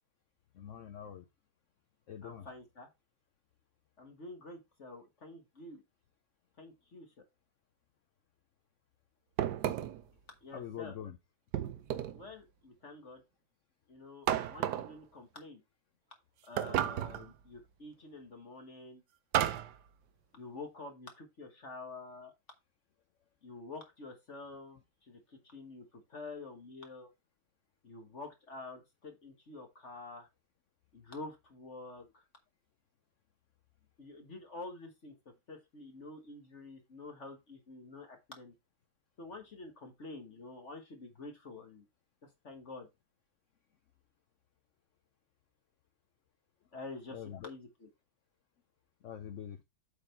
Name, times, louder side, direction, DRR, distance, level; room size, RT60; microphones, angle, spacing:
voice 1, 0.5-1.2 2.1-2.5 10.5-11.2 47.1-47.5 49.0-49.6, left 9 dB, 85° left, 10 dB, 0.6 m, -44 dB
voice 2, 2.2-2.9 4.0-5.8 6.6-7.1 10.4-10.9 12.1-13.2 13.9-15.6 16.5-19.0 20.3-22.3 23.4-27.1 27.8-30.3 30.9-32.2 34.0-35.1 35.5-38.5 39.2-41.8 42.2-42.9 46.7-47.9, left 3 dB, 40° left, 4 dB, 1.4 m, -48 dB
sound 1, 9.4-10.1 11.5-12.2 14.3-15.0 16.6-17.3 19.3-19.8, right 11 dB, 65° right, 1.1 m, -32 dB
8.0 x 4.1 x 4.3 m, 0.23 s
omnidirectional pair, 2.1 m